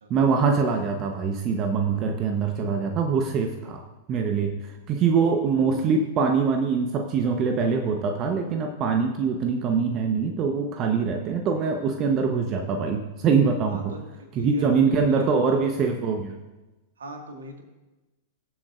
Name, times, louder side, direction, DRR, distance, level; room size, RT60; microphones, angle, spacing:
voice 1, 0.1-3.8 4.1-4.5 4.9-13.9 14.4-16.4, right 5 dB, 35° right, 5 dB, 1.0 m, -23 dB
voice 2, 13.6-15.6 17.0-17.6, right 2 dB, 70° right, 4 dB, 1.8 m, -40 dB
22.5 x 7.7 x 2.5 m, 1.1 s
figure-of-eight pair, 95°, 0 cm